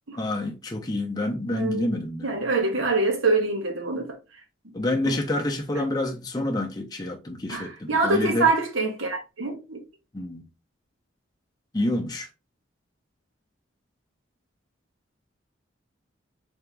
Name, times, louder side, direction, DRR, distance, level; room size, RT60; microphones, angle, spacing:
voice 1, 0.2-2.3 4.7-8.5 10.1-10.5 11.7-12.3, left 1 dB, 20° left, 0.5 m, -28 dB
voice 2, 1.5-1.9 2.2-4.2 5.1-5.2 7.5-9.8, right 3 dB, 85° right, 1.1 m, -25 dB
3.4 x 2.9 x 3.3 m
head